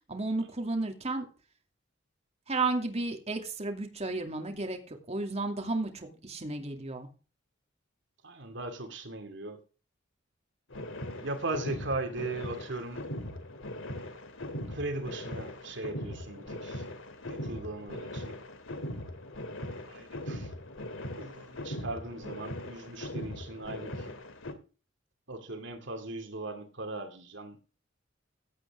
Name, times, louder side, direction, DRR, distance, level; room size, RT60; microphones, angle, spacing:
voice 1, 0.1-1.3 2.5-7.1, right 3 dB, 35° right, 4 dB, 2.5 m, -33 dB
voice 2, 8.2-9.6 11.2-13.1 14.7-16.8 17.2-18.4 19.9-20.5 21.2-24.2 25.3-27.6, right 2 dB, 65° right, 6 dB, 2.4 m, -38 dB
sound 1, 10.7-24.5, left 1 dB, 85° left, 2.4 m, -40 dB
16.0 x 8.7 x 3.6 m, 0.35 s
head